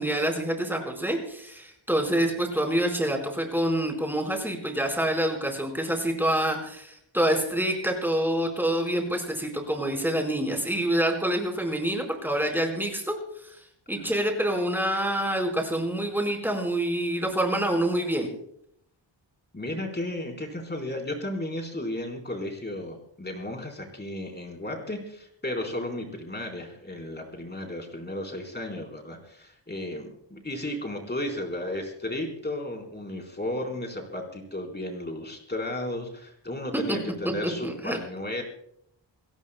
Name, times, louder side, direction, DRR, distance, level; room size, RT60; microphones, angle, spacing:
voice 1, 0.0-13.2 13.4-13.6 13.9-18.3 36.7-37.0 37.6-38.0, right 1 dB, 5° right, 2 dB, 4.4 m, -27 dB
voice 2, 19.5-38.4, left 1 dB, 20° left, 2 dB, 4.1 m, -34 dB
29.0 x 17.5 x 2.2 m, 0.71 s
wide cardioid pair, 150°, 45 cm